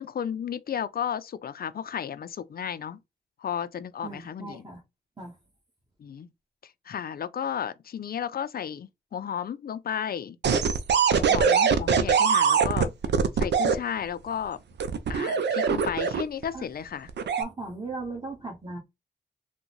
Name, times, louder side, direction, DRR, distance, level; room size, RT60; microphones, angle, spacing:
voice 1, 0.0-3.0 3.4-4.7 6.0-6.3 6.6-10.4 11.2-12.9 13.3-14.6 15.1-17.1, left 8 dB, 55° left, 0.4 m, -33 dB
voice 2, 4.0-4.8 5.2-5.3 16.5-16.7 17.4-18.8, right 3 dB, 20° right, 1.4 m, -37 dB
sound 1, 10.4-13.8 14.8-16.4 17.1-17.4, right 6 dB, 70° right, 0.5 m, -22 dB
3.5 x 2.2 x 3.0 m
supercardioid pair, 45°, 19 cm